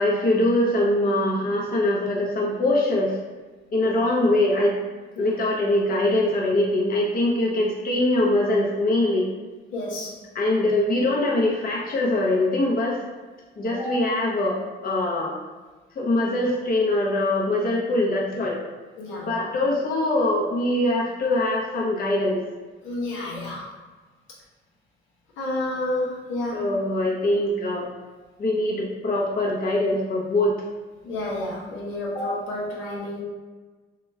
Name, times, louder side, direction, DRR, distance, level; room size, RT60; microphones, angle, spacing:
voice 1, 0.0-3.2 3.7-4.7 5.2-9.3 10.1-13.0 13.6-15.3 16.0-18.6 19.2-22.4 26.5-27.9 28.4-30.6, left 1 dB, 45° left, -3 dB, 0.8 m, -23 dB
voice 2, 9.7-10.1 19.0-19.3 22.8-23.7 25.4-26.6 31.0-33.2, left 1 dB, 85° left, -4 dB, 0.9 m, -30 dB
2.9 x 2.4 x 4.2 m, 1.3 s
cardioid pair, 90°, 20 cm